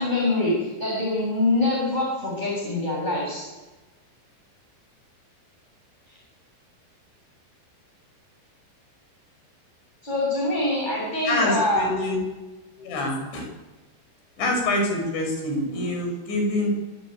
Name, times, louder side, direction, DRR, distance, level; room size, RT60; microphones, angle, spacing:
voice 1, 0.0-3.5 10.0-11.9, left 2 dB, 10° left, -3 dB, 6.9 m, -24 dB
voice 2, 11.3-12.2 12.8-13.5 14.4-16.7, left 1 dB, 90° left, 2 dB, 8.7 m, -26 dB
24.5 x 17.5 x 9.1 m, 1.2 s
omnidirectional pair, 5.1 m